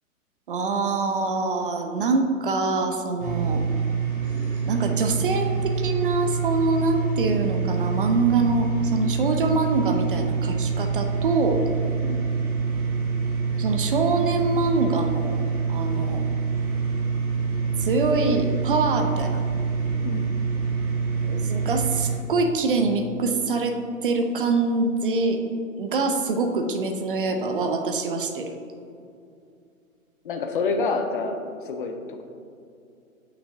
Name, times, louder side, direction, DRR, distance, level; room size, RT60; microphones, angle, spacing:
voice 1, 0.5-3.6 4.7-11.6 13.6-15.4 15.7-16.2 17.8-19.4 21.2-25.4 25.8-28.6, right 3 dB, 40° right, 6 dB, 0.5 m, -24 dB
sound 1, 3.2-22.1, right 5 dB, 20° right, 1.3 m, -26 dB
voice 2, 30.2-31.4 31.6-32.2, left 4 dB, 40° left, 5 dB, 0.5 m, -27 dB
7.7 x 6.0 x 2.7 m, 2.5 s
figure-of-eight pair, 120°, 42 cm